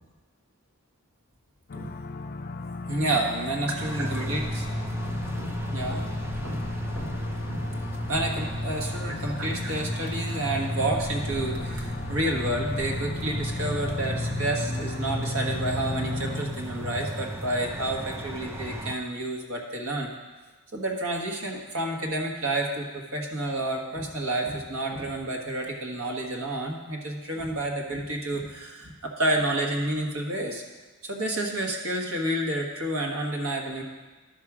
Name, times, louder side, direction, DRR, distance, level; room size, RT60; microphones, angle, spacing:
sound 1, 1.7-16.4, left 3 dB, 45° left, 0.4 m, -37 dB
voice 1, 2.9-4.7 5.4-6.1 6.4-6.7 6.9-7.2 7.5-7.6 8.0-20.1 20.7-30.6 31.0-33.8, right 1 dB, 75° right, 1 dB, 1.5 m, -30 dB
sound 2, 3.8-18.9, equal, 10° right, 0.5 m, -33 dB
11.0 x 4.9 x 6.1 m, 1.2 s
head